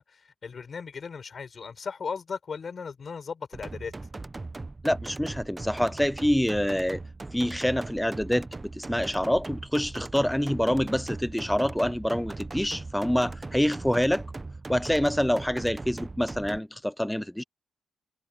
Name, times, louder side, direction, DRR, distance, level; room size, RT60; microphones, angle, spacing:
voice 1, 0.0-3.9, left 5 dB, 45° left, 4.8 m, -37 dB
sound 1, 3.5-16.6, right 3 dB, 20° right, 0.8 m, -39 dB
voice 2, 4.8-7.0 7.3-14.3 14.7-17.4, equal, 5° left, 0.3 m, -26 dB
cardioid pair, 105°, 0 cm